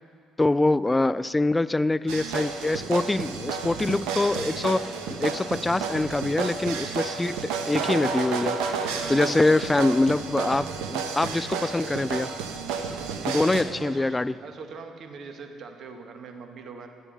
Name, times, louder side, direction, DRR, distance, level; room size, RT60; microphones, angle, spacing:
voice 1, 0.4-4.9 5.2-8.6 9.1-12.3 13.3-14.3, left 2 dB, 15° left, 17 dB, 0.4 m, -24 dB
sound 1, 2.1-13.6, right 5 dB, 70° right, 1.2 m, -31 dB
voice 2, 9.4-10.0 12.9-16.9, right 4 dB, 50° right, 5 dB, 1.7 m, -42 dB
16.0 x 12.5 x 5.6 m, 2.4 s
figure-of-eight pair, 50°, 0 cm